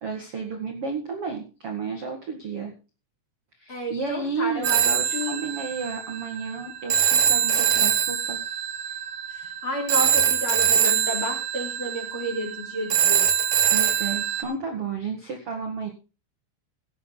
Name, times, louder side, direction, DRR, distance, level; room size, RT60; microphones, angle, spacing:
voice 1, 0.0-2.7 3.6-8.4 8.9-9.0 13.7-15.9, right 5 dB, 55° right, 3 dB, 1.6 m, -32 dB
voice 2, 3.7-4.8 5.1-5.3 9.3-13.3, equal, 30° left, 0 dB, 4.1 m, -31 dB
Telephone, 4.6-14.4, right 9 dB, 75° right, 1.6 m, -23 dB
16.5 x 10.0 x 4.0 m, 0.33 s
omnidirectional pair, 5.7 m